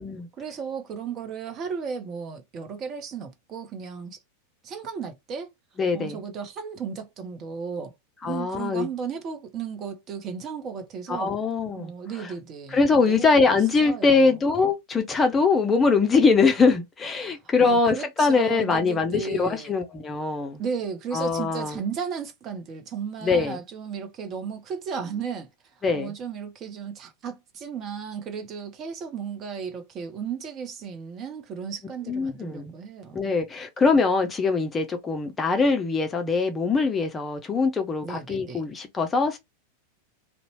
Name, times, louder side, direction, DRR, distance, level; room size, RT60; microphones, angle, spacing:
voice 1, 0.4-4.2 4.6-5.5 5.9-7.9 8.2-11.3 11.8-14.4 17.2-19.7 20.6-25.5 25.9-33.4 38.0-38.7, right 6 dB, 30° right, 0.8 m, -35 dB
voice 2, 5.8-6.2 8.2-8.9 11.1-11.9 12.7-20.6 21.1-21.8 23.2-23.6 25.8-26.1 32.1-32.7 33.1-39.4, left 4 dB, 20° left, 0.5 m, -22 dB
2.7 x 2.1 x 2.9 m
figure-of-eight pair, 90°, 0 cm